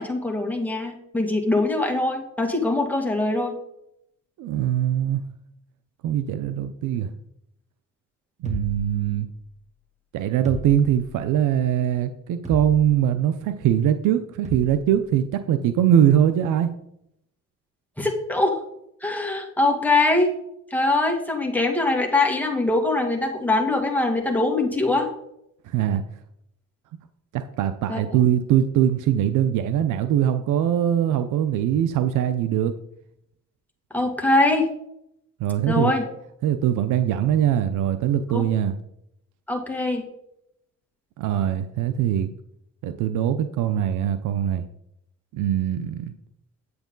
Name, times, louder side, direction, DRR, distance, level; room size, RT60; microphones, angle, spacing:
voice 1, 0.0-3.5 18.0-18.6 19.0-20.3 20.7-25.1 27.9-28.0 33.9-34.7 35.7-36.0 38.3-38.4 39.5-40.0, left 2 dB, 5° left, 1 dB, 2.2 m, -22 dB
voice 2, 4.4-5.2 6.0-7.1 8.4-9.3 10.1-16.7 25.7-26.0 27.3-32.7 35.4-35.9 36.4-38.8 41.2-42.3 42.8-44.7 45.3-46.1, right 10 dB, 85° right, 10 dB, 0.7 m, -22 dB
sound 1, 8.5-9.6 10.5-11.3 12.5-13.1 14.5-14.9, left 1 dB, 25° right, 2.1 m, -36 dB
9.6 x 8.1 x 3.9 m, 0.77 s
cardioid pair, 90°, 30 cm